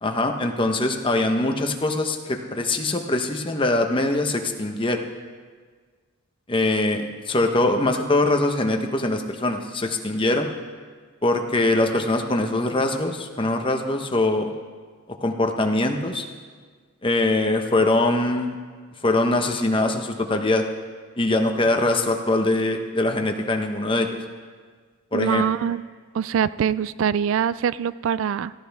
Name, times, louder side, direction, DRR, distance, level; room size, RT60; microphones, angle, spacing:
voice 1, 0.0-5.0 6.5-10.5 11.2-14.5 15.2-16.3 17.0-18.5 19.0-20.7 21.2-24.1 25.1-25.4, left 2 dB, 25° left, 4 dB, 1.0 m, -22 dB
voice 2, 25.1-25.9 26.1-28.5, right 8 dB, 70° right, 17 dB, 0.3 m, -23 dB
17.0 x 15.0 x 3.5 m, 1.6 s
head